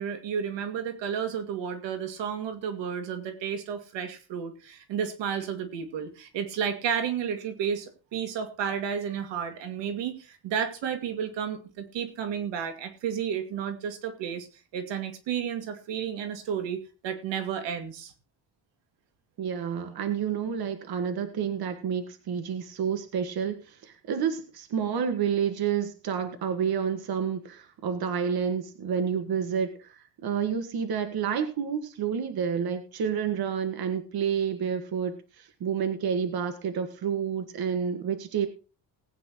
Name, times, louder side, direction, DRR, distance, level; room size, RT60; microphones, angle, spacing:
voice 1, 0.0-14.5 14.7-18.1, right 7 dB, 85° right, 7 dB, 2.3 m, -32 dB
voice 2, 19.4-38.5, right 7 dB, 60° right, 8 dB, 1.7 m, -29 dB
19.5 x 9.2 x 3.0 m, 0.31 s
cardioid pair, 140°, 43 cm